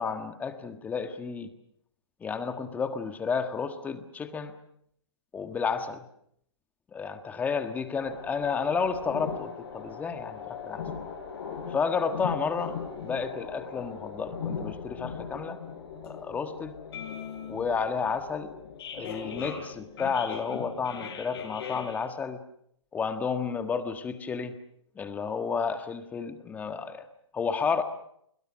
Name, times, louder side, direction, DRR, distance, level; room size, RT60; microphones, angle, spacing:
voice 1, 0.0-1.5 2.2-4.5 5.3-6.0 6.9-10.9 11.7-12.8 13.0-15.6 16.0-16.8 17.5-18.5 18.9-22.4 22.9-24.6 24.9-27.1 27.3-27.8, left 5 dB, 10° left, 8 dB, 1.6 m, -31 dB
sound 1, 8.0-22.1, left 6 dB, 50° left, 7.0 m, -39 dB
29.5 x 22.0 x 6.3 m, 0.71 s
hypercardioid pair, 150°, 16 cm